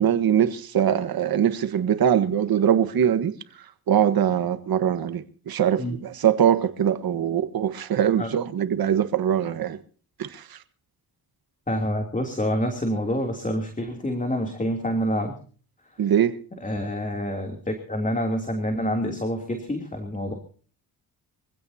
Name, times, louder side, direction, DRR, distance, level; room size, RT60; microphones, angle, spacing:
voice 1, 0.0-3.4 3.9-9.8 10.2-10.6 16.0-16.4, right 9 dB, 60° right, 1.5 m, -22 dB
voice 2, 11.7-15.3 16.6-20.3, equal, 20° left, 3.1 m, -27 dB
25.0 x 16.0 x 2.8 m
cardioid pair, 85°, 40 cm